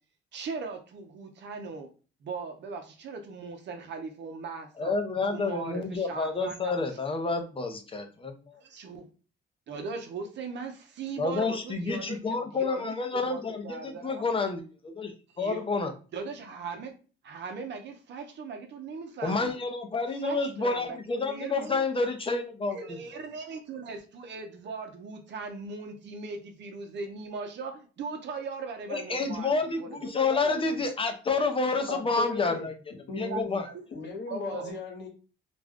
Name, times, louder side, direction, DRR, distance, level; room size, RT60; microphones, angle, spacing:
voice 1, 0.3-1.9 2.2-4.9 5.3-6.7 8.6-9.1 9.7-14.2 15.3-15.6 16.1-16.9 17.2-19.6 20.2-21.9 22.7-30.8 33.3-33.8 34.3-34.7, right 4 dB, 65° right, 0.7 m, -39 dB
voice 2, 4.8-8.6 11.2-15.9 19.2-22.8 28.9-32.7 33.1-33.7, left 3 dB, 25° left, 0.6 m, -29 dB
voice 3, 31.9-32.7 33.1-33.6 33.9-35.1, left 4 dB, 60° left, 1.1 m, -36 dB
2.5 x 2.2 x 3.5 m
cardioid pair, 90°, 20 cm